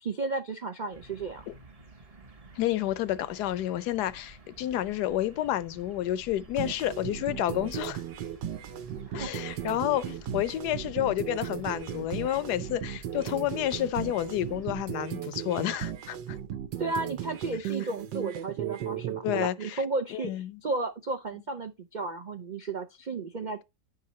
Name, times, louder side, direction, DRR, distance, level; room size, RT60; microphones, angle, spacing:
voice 1, 0.0-1.4 9.1-9.4 16.8-23.6, right 3 dB, 70° right, 0.4 m, -33 dB
sound 1, 0.9-14.8, right 2 dB, 30° right, 0.7 m, -51 dB
voice 2, 2.6-8.0 9.1-16.4 19.2-19.8 20.1-20.6, left 13 dB, 75° left, 1.1 m, -30 dB
sound 2, 6.6-19.5, right 10 dB, 90° right, 1.5 m, -36 dB
10.0 x 3.8 x 4.2 m
omnidirectional pair, 1.9 m